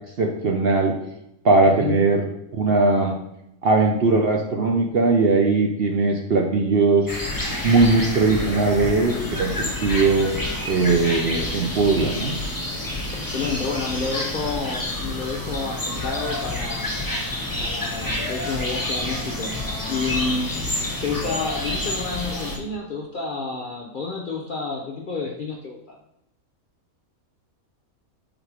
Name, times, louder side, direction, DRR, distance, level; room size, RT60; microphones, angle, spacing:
voice 1, 0.2-1.0 1.4-2.2 2.5-3.1 3.6-7.1 7.6-10.3 10.6-12.4, right 3 dB, 55° right, 2 dB, 0.7 m, -19 dB
voice 2, 1.6-2.0 13.1-16.9 17.6-20.6 21.0-26.0, left 4 dB, 50° left, -1 dB, 0.6 m, -29 dB
sound 1, 7.1-22.6, left 1 dB, 15° left, 1.1 m, -28 dB
5.2 x 3.8 x 4.7 m, 0.82 s
omnidirectional pair, 1.5 m